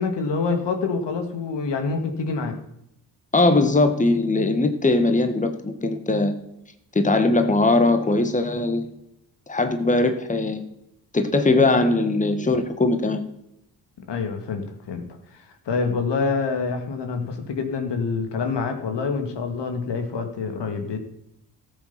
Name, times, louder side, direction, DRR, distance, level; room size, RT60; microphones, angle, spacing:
voice 1, 0.0-2.6 14.1-15.0 15.3-21.0, left 4 dB, 65° left, 6 dB, 2.0 m, -26 dB
voice 2, 3.3-6.3 6.9-8.9 9.5-10.6 11.1-13.2, left 2 dB, 15° left, 7 dB, 1.4 m, -20 dB
13.5 x 7.2 x 5.8 m, 0.80 s
supercardioid pair, 60°, 45 cm